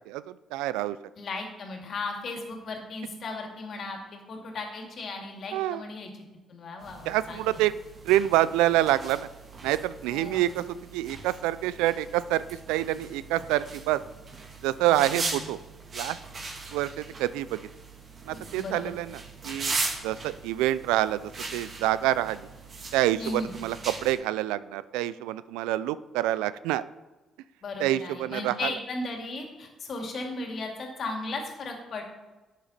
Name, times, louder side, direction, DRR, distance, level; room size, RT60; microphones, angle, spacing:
voice 1, 0.1-1.0 5.5-5.8 7.1-7.7 8.1-9.3 9.6-12.4 12.7-14.0 14.6-15.6 15.9-16.2 16.7-17.6 18.3-19.8 20.0-22.4 22.9-26.8 27.8-28.7, right 14 dB, 85° right, 16 dB, 0.3 m, -27 dB
voice 2, 1.2-6.1 6.5-7.7 10.1-10.7 14.8-15.4 18.5-18.9 23.2-23.6 27.6-32.0, left 3 dB, 60° left, 2 dB, 2.4 m, -36 dB
sound 1, 6.8-24.1, right 3 dB, 50° right, 2.8 m, -39 dB
11.0 x 7.3 x 4.1 m, 1.2 s
supercardioid pair, 60°, 0 cm